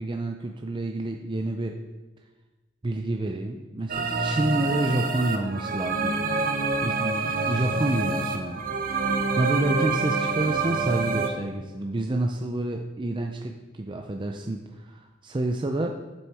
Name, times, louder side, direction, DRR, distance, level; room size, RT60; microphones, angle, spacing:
voice 1, 0.0-1.8 2.8-8.6 8.9-15.9, right 1 dB, 25° right, 3 dB, 0.5 m, -29 dB
sound 1, 3.9-11.3, right 4 dB, 45° right, 0.9 m, -27 dB
8.5 x 7.3 x 4.8 m, 1.2 s
head